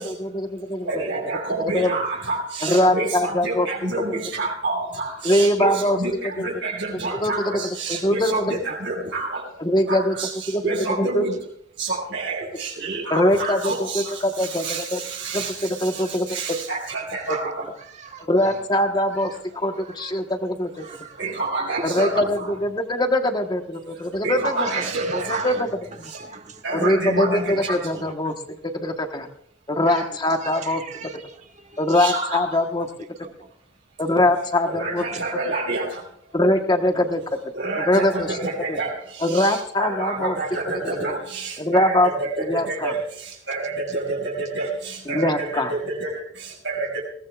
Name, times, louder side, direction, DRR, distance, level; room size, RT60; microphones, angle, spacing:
voice 1, 0.0-0.9 1.7-2.0 2.6-3.7 5.2-6.0 6.4-6.5 7.2-7.5 7.9-8.3 9.6-10.1 10.5-10.6 11.0-11.2 13.1-15.0 15.3-16.4 18.3-20.9 21.8-24.7 25.1-25.7 26.0-26.1 26.7-28.3 28.7-29.3 29.7-30.8 31.8-32.9 34.0-35.0 36.3-37.4 37.9-38.4 38.7-38.8 39.2-40.3 41.6-42.1 42.5-42.9 45.1-45.7, left 1 dB, 25° left, 5 dB, 1.3 m, -22 dB
voice 2, 0.8-9.6 9.9-11.4 11.8-17.7 20.9-22.5 23.9-25.6 26.0-26.2 26.6-28.0 31.9-32.5 34.6-36.4 37.5-47.0, right 3 dB, 75° right, -5 dB, 5.5 m, -28 dB
voice 3, 18.0-18.5 19.8-20.1 20.8-21.2 24.4-25.7 26.0-26.6 29.9-30.1 30.4-31.3 31.7-31.9 33.2-33.3, right 5 dB, 40° right, 4 dB, 1.4 m, -39 dB
21.5 x 18.0 x 2.4 m, 0.68 s
head